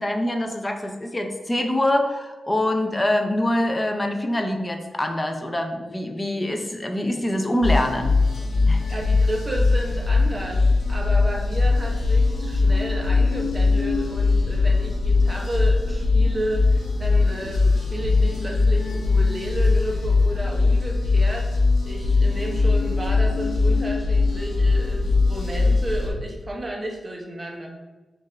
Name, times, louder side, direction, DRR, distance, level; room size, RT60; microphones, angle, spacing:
voice 1, 0.0-8.2 8.7-8.8, left 1 dB, 15° left, 4 dB, 0.4 m, -24 dB
sound 1, 7.6-26.1, left 3 dB, 85° left, 1.0 m, -21 dB
voice 2, 8.9-21.5 21.9-27.7, right 1 dB, 20° right, 0 dB, 0.7 m, -32 dB
5.5 x 2.4 x 3.2 m, 1.2 s
wide cardioid pair, 160°, 0 cm